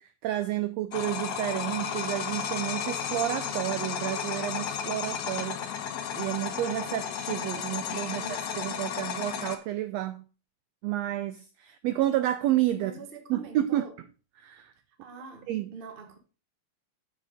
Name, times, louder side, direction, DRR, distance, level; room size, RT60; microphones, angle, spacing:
voice 1, 0.0-5.6 6.1-8.2 8.6-10.2 10.8-12.9 13.3-13.8 14.4-14.7 15.5-15.7, right 13 dB, 85° right, 1.5 m, -30 dB
sound 1, 0.9-9.6, left 8 dB, 65° left, 1.9 m, -33 dB
voice 2, 8.1-8.6 12.7-13.9 15.0-16.2, right 4 dB, 45° right, 0.6 m, -44 dB
7.6 x 6.4 x 5.0 m
omnidirectional pair, 3.5 m